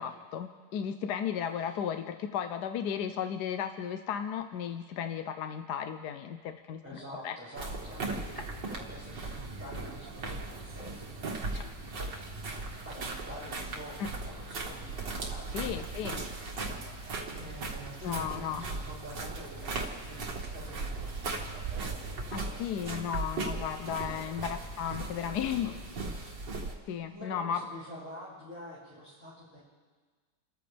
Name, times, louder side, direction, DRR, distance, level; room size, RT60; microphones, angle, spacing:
voice 1, 0.0-6.8 7.2-7.4 8.1-8.2 11.5-11.6 14.0-14.1 15.5-16.3 18.0-18.6 22.3-25.8 26.9-27.6, left 8 dB, 75° left, 8 dB, 1.2 m, -34 dB
voice 2, 6.8-12.5 12.8-15.6 17.3-23.0 23.9-26.4 27.1-29.6, equal, 5° right, -11 dB, 6.2 m, -48 dB
sound 1, 7.5-26.7, right 3 dB, 90° right, 2.4 m, -38 dB
Bird vocalization bird call bird song, 14.9-22.2, right 7 dB, 60° right, 0.9 m, -44 dB
29.5 x 14.0 x 3.4 m, 1.5 s
omnidirectional pair, 1.8 m